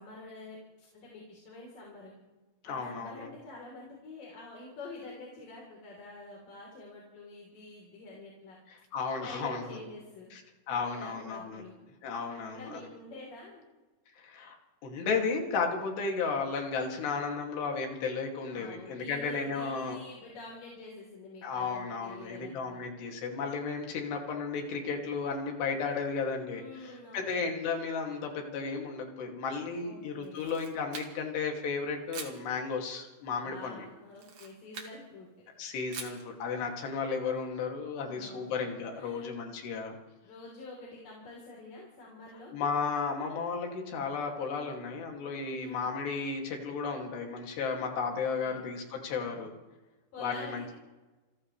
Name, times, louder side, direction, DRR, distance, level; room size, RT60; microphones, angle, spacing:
voice 1, 0.0-2.1 2.6-8.6 9.2-10.3 10.7-11.7 12.3-13.6 18.5-22.8 26.5-27.5 29.8-30.5 33.4-35.3 38.1-38.5 39.0-39.3 40.2-42.5 45.3-45.8 48.1-48.7 50.1-50.7, left 2 dB, 55° left, -3 dB, 5.2 m, -47 dB
voice 2, 2.7-3.3 8.7-9.8 10.3-10.4 10.7-11.6 12.0-12.8 14.2-14.6 14.8-20.0 21.4-26.6 27.1-33.9 35.6-40.0 42.5-49.5 50.2-50.7, left 5 dB, 85° left, 1 dB, 4.6 m, -34 dB
Camera, 30.2-31.4 32.1-32.4 34.1-35.0 35.9-36.3, right 5 dB, 50° right, 2.8 m, -44 dB
28.5 x 15.5 x 3.3 m, 1.1 s
omnidirectional pair, 4.7 m